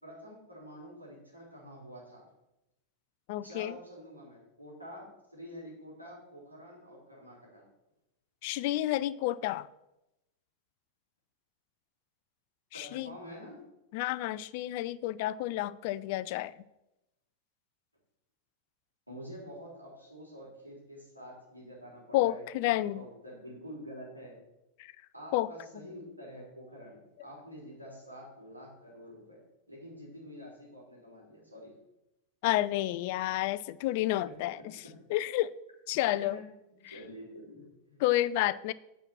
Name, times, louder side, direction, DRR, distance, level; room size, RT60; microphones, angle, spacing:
voice 1, 0.0-2.2 3.4-7.6 12.7-13.6 19.1-24.4 25.1-29.4 29.7-31.7 34.2-34.3 36.1-36.4 36.9-38.0, equal, 90° right, 3.5 m, -48 dB
voice 2, 3.3-3.7 8.4-9.7 12.7-13.1 13.9-16.5 22.1-23.1 24.8-24.9 25.3-25.5 32.4-34.7 35.1-35.5 35.9-36.4 36.9-37.0 38.0-38.7, left 15 dB, 50° left, 0.3 m, -30 dB
9.0 x 5.5 x 5.9 m
figure-of-eight pair, 90°, 0 cm